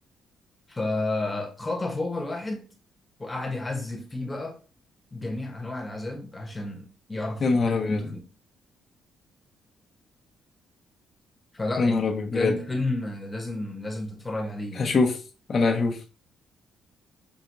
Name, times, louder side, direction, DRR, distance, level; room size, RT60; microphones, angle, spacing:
voice 1, 0.7-2.7 3.2-4.6 5.1-8.3 11.5-14.9, left 2 dB, 20° left, 1.0 m, -31 dB
voice 2, 7.4-8.0 11.8-12.5 14.8-15.1 15.5-16.0, left 4 dB, 45° left, 1.2 m, -23 dB
5.9 x 2.7 x 2.6 m
cardioid pair, 90°, 0 cm